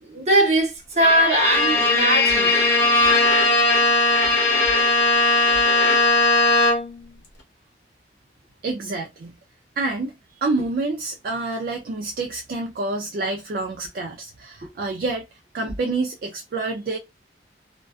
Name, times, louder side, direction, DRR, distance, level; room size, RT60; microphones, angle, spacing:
voice 1, 0.0-2.7 14.6-14.7, right 1 dB, 40° right, 0.9 m, -20 dB
Bowed string instrument, 1.0-7.1, left 2 dB, 75° left, 1.0 m, -18 dB
voice 2, 8.6-9.3 9.8-15.2 15.5-17.0, right 3 dB, 55° right, 0.3 m, -28 dB
2.3 x 2.2 x 2.3 m
head